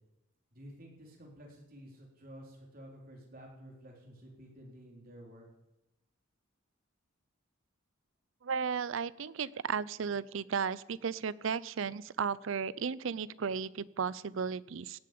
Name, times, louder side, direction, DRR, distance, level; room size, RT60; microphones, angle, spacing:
voice 1, 0.5-5.4, equal, 45° right, -1 dB, 3.9 m, -52 dB
voice 2, 8.4-15.0, right 6 dB, 65° right, 20 dB, 0.5 m, -35 dB
17.5 x 7.6 x 8.5 m, 0.93 s
head